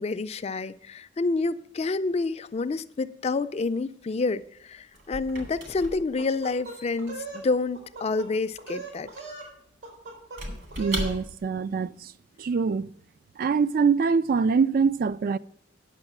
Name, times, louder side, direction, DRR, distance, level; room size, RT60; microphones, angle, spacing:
voice 1, 0.0-9.1, left 3 dB, 35° left, 0.4 m, -28 dB
Squeak / Wood, 4.4-11.6, right 1 dB, 65° right, 2.8 m, -39 dB
sound 1, 6.2-7.4 7.7-8.3 8.6-9.5 9.8-10.4 10.7-11.2, right 3 dB, 85° right, 4.0 m, -39 dB
voice 2, 10.8-12.1 12.4-12.9 13.4-15.4, right 5 dB, 50° right, 0.3 m, -24 dB
9.8 x 6.4 x 6.0 m
head